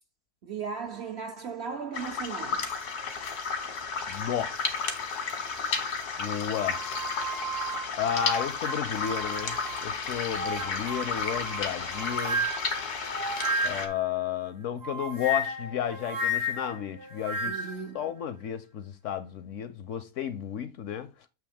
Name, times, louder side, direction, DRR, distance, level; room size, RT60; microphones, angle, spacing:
voice 1, 0.4-2.7 5.6-5.8 17.4-18.0, right 5 dB, 60° right, 0.7 m, -37 dB
sound 1, 1.9-13.9, left 5 dB, 90° left, 1.8 m, -33 dB
voice 2, 4.1-4.6 6.2-6.8 8.0-12.5 13.6-17.7 17.9-21.1, left 9 dB, 70° left, 0.8 m, -32 dB
sound 2, 6.6-9.8 10.3-14.0 14.8-17.9, equal, 85° right, 2.6 m, -33 dB
7.7 x 3.0 x 5.1 m
omnidirectional pair, 1.6 m